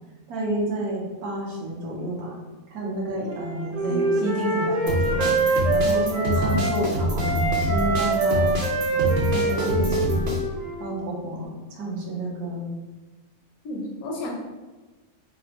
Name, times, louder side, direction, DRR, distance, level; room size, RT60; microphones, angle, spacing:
voice 1, 0.3-2.3 2.7-8.6 8.9-10.3 10.8-12.7, right 1 dB, 90° right, -3 dB, 1.2 m, -30 dB
Wind instrument woodwind instrument, 3.3-6.8 7.2-10.9, right 2 dB, 70° right, 1.1 m, -25 dB
sound 1, 4.9-10.4, equal, 55° right, 0.5 m, -26 dB
voice 2, 13.6-14.3, left 2 dB, 80° left, -2 dB, 1.2 m, -33 dB
3.4 x 2.0 x 2.6 m, 1.2 s
omnidirectional pair, 1.5 m